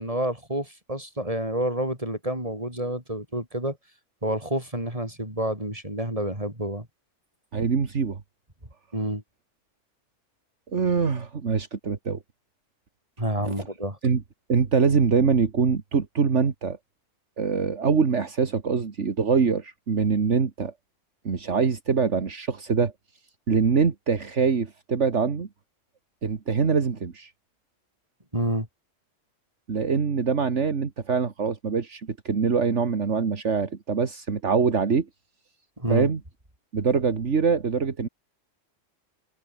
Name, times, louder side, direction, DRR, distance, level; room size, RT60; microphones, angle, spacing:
voice 1, 0.0-3.8 4.2-6.9 8.9-9.2 13.2-14.0 28.3-28.7 35.8-36.1, right 1 dB, 25° right, 7.5 m, -29 dB
voice 2, 7.5-8.2 10.7-12.2 13.4-13.5 14.0-14.2 14.5-16.8 17.4-20.7 21.3-22.9 23.5-25.5 26.2-27.3 29.7-35.1 35.9-36.2 36.7-38.1, right 5 dB, 65° right, 2.0 m, -24 dB
omnidirectional pair, 1.3 m